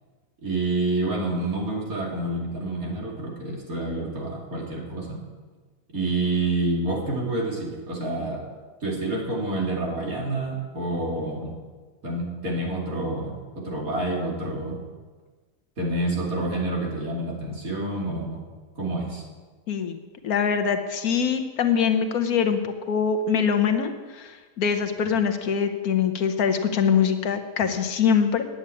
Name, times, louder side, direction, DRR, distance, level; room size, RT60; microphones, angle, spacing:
voice 1, 0.4-5.2 5.9-8.4 8.8-11.5 12.0-14.8 15.8-18.4 18.7-19.2 25.1-25.2, right 2 dB, 60° right, -2 dB, 3.0 m, -28 dB
voice 2, 19.7-28.4, left 7 dB, 70° left, 8 dB, 1.3 m, -23 dB
9.6 x 8.8 x 8.5 m, 1.4 s
omnidirectional pair, 1.7 m